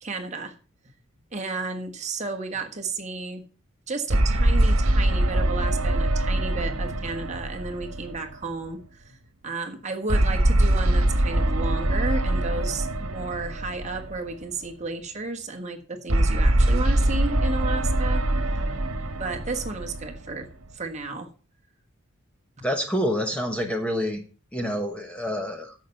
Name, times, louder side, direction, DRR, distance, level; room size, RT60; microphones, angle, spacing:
voice 1, 0.0-0.5 1.3-3.4 3.9-9.1 9.4-18.2 18.5-18.6 19.2-20.5 20.7-21.3, right 3 dB, 35° right, 3 dB, 1.4 m, -33 dB
sound 1, 4.1-8.7 10.1-14.5 16.1-20.7, right 1 dB, 75° right, 1.3 m, -23 dB
voice 2, 22.6-24.2 24.5-25.7, equal, 5° left, 4 dB, 1.0 m, -27 dB
10.5 x 7.1 x 5.3 m, 0.37 s
head